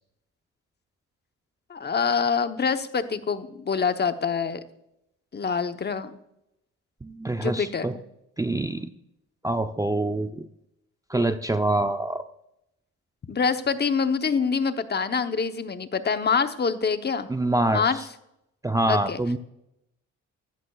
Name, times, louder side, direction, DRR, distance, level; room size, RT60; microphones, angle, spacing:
voice 1, 1.7-4.6 5.3-6.1 7.4-7.9 13.3-17.3 17.7-18.0 18.9-19.2, left 5 dB, 35° left, 9 dB, 0.9 m, -25 dB
voice 2, 7.0-8.0 8.4-8.9 9.4-10.5 11.1-12.2 17.3-17.8 18.6-19.4, right 2 dB, 10° right, 8 dB, 0.6 m, -25 dB
15.0 x 13.0 x 2.4 m, 0.82 s
cardioid pair, 90°, 30 cm